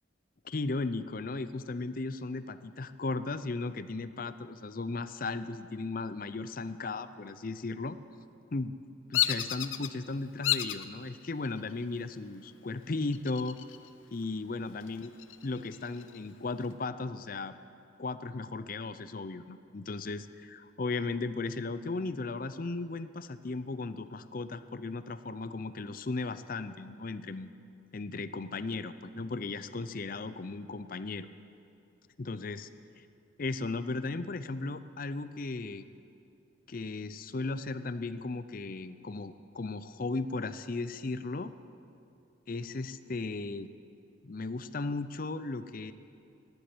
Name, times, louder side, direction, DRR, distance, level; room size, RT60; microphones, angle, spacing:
voice 1, 0.4-8.0 8.5-8.7 9.1-13.6 14.1-15.1 15.4-17.5 18.0-27.5 27.9-31.3 32.2-32.7 33.4-35.9 36.7-41.5 42.5-43.7 44.2-45.9, left 3 dB, 45° left, 12 dB, 0.5 m, -36 dB
Bird vocalization bird call bird song, 9.1-9.9 10.4-10.9 11.4-11.9 13.1-13.9 14.2-14.3 14.8-16.2, left 12 dB, 85° left, 0.6 m, -31 dB
14.5 x 10.5 x 8.4 m, 2.6 s
head